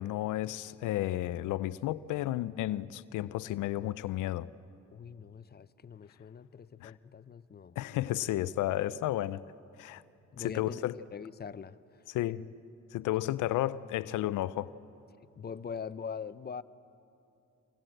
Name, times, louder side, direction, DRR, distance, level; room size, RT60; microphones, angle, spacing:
voice 1, 0.0-4.5 6.8-6.9 7.8-9.4 9.8-10.0 10.4-11.0 12.1-12.5 12.9-14.7, left 14 dB, 85° left, 0.6 m, -32 dB
voice 2, 4.9-7.8 10.3-10.9 11.1-12.0 15.4-16.6, left 6 dB, 35° left, 0.7 m, -42 dB
25.0 x 20.5 x 7.8 m
cardioid pair, 90°, 30 cm